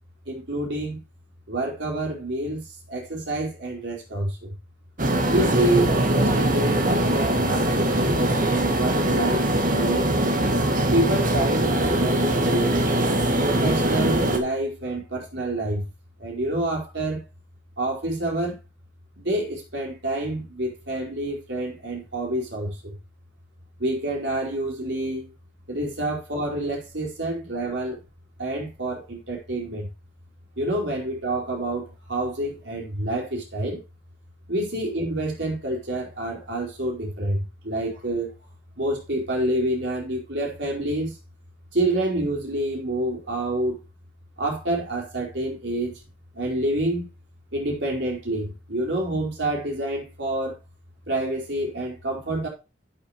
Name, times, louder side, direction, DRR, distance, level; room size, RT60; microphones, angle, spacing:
voice 1, 0.3-1.0 1.5-4.5 5.3-10.1 10.9-12.9 13.4-15.8 16.2-17.2 17.8-18.6 19.2-22.9 23.8-25.3 25.7-28.0 28.4-29.9 30.6-33.8 34.5-38.3 38.8-41.1 41.7-43.8 44.4-46.0 46.3-47.1 47.5-50.5 51.1-52.5, right 1 dB, 65° right, -1 dB, 4.9 m, -27 dB
sound 1, 5.0-14.4, right 1 dB, 45° right, 2.1 m, -22 dB
12.5 x 9.3 x 3.0 m, 0.27 s
head